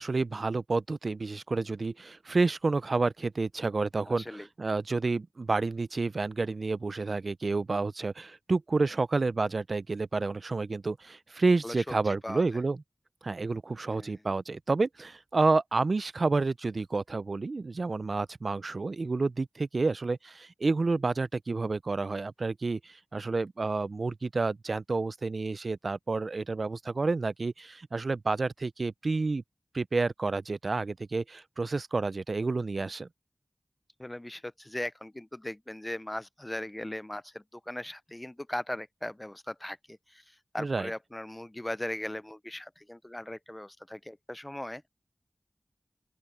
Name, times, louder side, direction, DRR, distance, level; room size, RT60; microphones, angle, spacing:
voice 1, 0.0-12.8 13.2-29.4 29.7-33.1 40.6-40.9, right 3 dB, 75° right, 0.4 m, -29 dB
voice 2, 4.1-4.5 11.6-12.4 13.9-14.2 34.0-44.8, left 1 dB, 20° left, 0.4 m, -39 dB
open air
cardioid pair, 40°, 0 cm